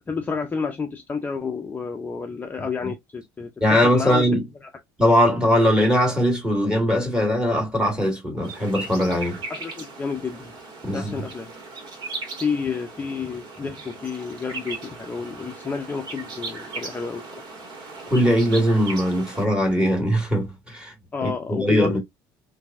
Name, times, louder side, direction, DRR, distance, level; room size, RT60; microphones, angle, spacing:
voice 1, 0.1-4.3 9.5-10.6 10.9-11.5 12.4-17.4 21.1-22.0, left 5 dB, 20° left, 0.6 m, -30 dB
voice 2, 3.6-4.4 5.0-9.4 10.8-11.1 18.1-20.9 21.5-22.0, equal, 10° right, 1.9 m, -20 dB
sound 1, 8.4-19.4, right 3 dB, 55° right, 1.8 m, -38 dB
2.9 x 2.6 x 2.4 m
supercardioid pair, 95°, 9 cm